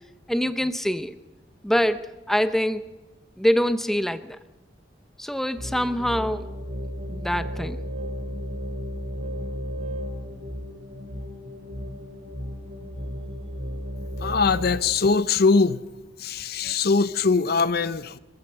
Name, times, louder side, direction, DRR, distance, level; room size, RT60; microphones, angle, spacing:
voice 1, 0.3-1.2 1.6-2.0 2.3-2.9 3.4-4.4 5.2-6.5 7.1-7.8, equal, ahead, 10 dB, 0.7 m, -24 dB
sound 1, 5.6-14.8, equal, 45° right, 4.8 m, -34 dB
voice 2, 14.2-15.8 16.2-18.2, left 4 dB, 60° left, 14 dB, 0.6 m, -22 dB
24.5 x 15.5 x 6.8 m, 1.0 s
head